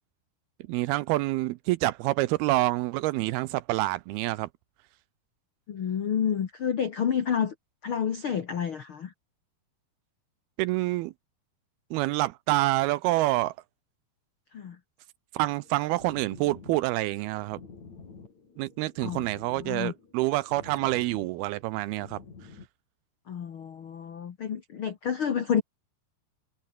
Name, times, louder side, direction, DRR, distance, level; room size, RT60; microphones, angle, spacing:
voice 1, 0.7-4.5 10.6-11.1 11.9-13.5 15.3-17.6 18.6-22.2, right 18 dB, 85° right, 2.3 m, -27 dB
voice 2, 5.7-7.5 7.8-9.1 14.5-14.8 19.0-19.2 19.6-19.9 23.3-25.6, left 8 dB, 75° left, 1.2 m, -29 dB
sound 1, 15.5-22.7, left 5 dB, 45° left, 5.7 m, -49 dB
omnidirectional pair, 4.8 m